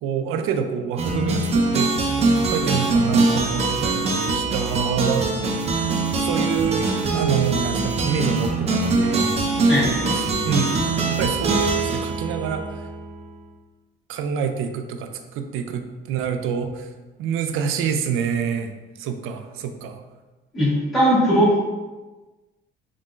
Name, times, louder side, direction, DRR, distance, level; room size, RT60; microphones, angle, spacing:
voice 1, 0.0-5.3 6.2-9.3 10.1-12.8 14.1-16.9 17.2-18.7 19.0-20.0, right 7 dB, 90° right, 7 dB, 0.5 m, -27 dB
sound 1, 1.0-13.2, right 3 dB, 30° right, 0.5 m, -22 dB
voice 2, 9.7-10.1 20.5-21.6, equal, ahead, -11 dB, 1.5 m, -19 dB
4.2 x 3.7 x 2.5 m, 1.2 s
cardioid pair, 155°, 21 cm